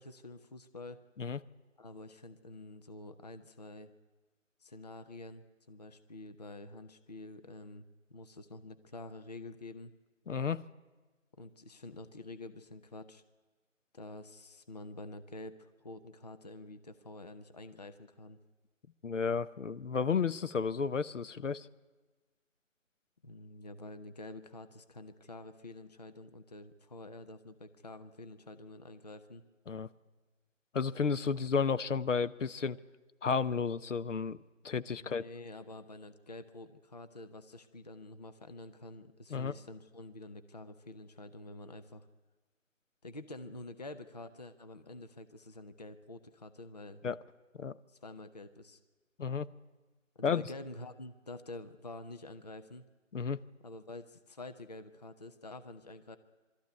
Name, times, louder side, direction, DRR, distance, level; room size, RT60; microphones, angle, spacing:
voice 1, 0.0-1.0 1.8-3.9 4.6-9.9 11.4-13.2 13.9-18.4 23.2-29.4 35.0-42.1 43.0-47.0 47.9-48.8 50.2-52.9 53.6-56.2, left 2 dB, 30° left, 10 dB, 0.7 m, -48 dB
voice 2, 10.3-10.6 19.0-21.7 29.7-29.9 30.7-32.8 33.2-34.4 34.6-35.2 39.3-39.5 47.0-47.2 47.6-47.7 49.2-49.5 50.2-50.4 53.1-53.4, left 5 dB, 65° left, 14 dB, 0.8 m, -32 dB
22.0 x 13.5 x 9.4 m, 1.3 s
figure-of-eight pair, 160°, 40 cm